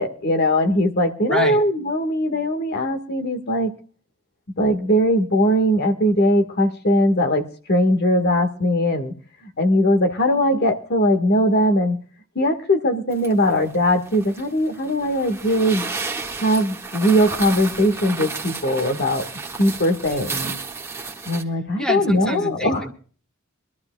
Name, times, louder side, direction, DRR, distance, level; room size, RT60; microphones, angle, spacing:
voice 1, 0.0-3.7 4.6-9.1 9.4-12.0 12.3-15.8 16.4-19.2 19.6-20.3 21.3-22.8, equal, 50° left, 7 dB, 1.6 m, -20 dB
voice 2, 1.3-1.6 20.1-20.6 21.8-22.9, equal, 5° left, 3 dB, 1.6 m, -27 dB
sound 1, 13.1-21.4, right 4 dB, 15° right, 1.6 m, -32 dB
24.5 x 12.5 x 2.3 m, 0.43 s
head